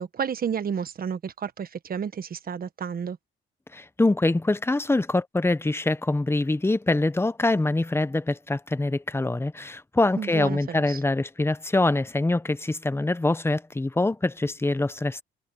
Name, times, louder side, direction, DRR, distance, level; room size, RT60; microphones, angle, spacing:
voice 1, 0.0-3.2 10.2-11.0, right 7 dB, 50° right, 1.4 m, -31 dB
voice 2, 3.7-15.2, left 2 dB, 10° left, 1.0 m, -24 dB
cardioid pair, 90°, 20 cm